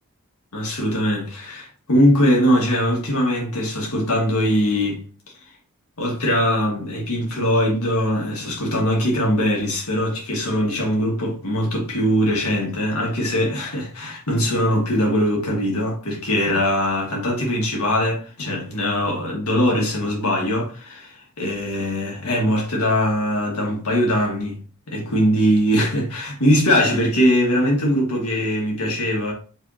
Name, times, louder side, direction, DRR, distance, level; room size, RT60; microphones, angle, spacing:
voice 1, 0.5-5.0 6.0-24.6 24.9-29.3, equal, 90° left, 1.5 m, -21 dB
5.1 x 3.4 x 2.7 m
head